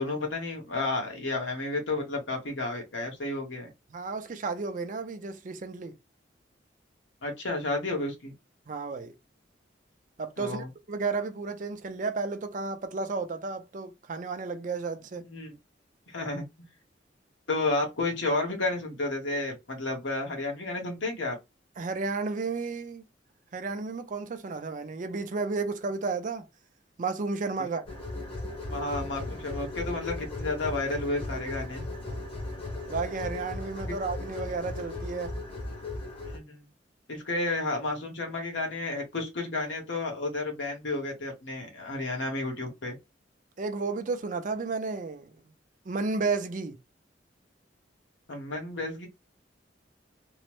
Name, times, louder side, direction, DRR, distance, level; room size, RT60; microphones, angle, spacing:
voice 1, 0.0-3.7 7.2-8.3 10.4-10.7 15.2-15.6 16.1-16.4 17.5-21.4 28.6-31.8 36.2-36.6 37.1-42.9 48.3-49.1, left 2 dB, 85° left, 1.2 m, -31 dB
voice 2, 3.9-6.0 8.7-9.1 10.2-15.2 21.8-23.0 23.5-26.4 27.0-27.8 32.1-32.2 32.9-35.3 43.6-45.3 45.9-46.8, right 4 dB, 45° right, 0.4 m, -32 dB
sound 1, 27.9-36.4, left 2 dB, 30° left, 0.9 m, -36 dB
3.0 x 2.0 x 3.0 m
head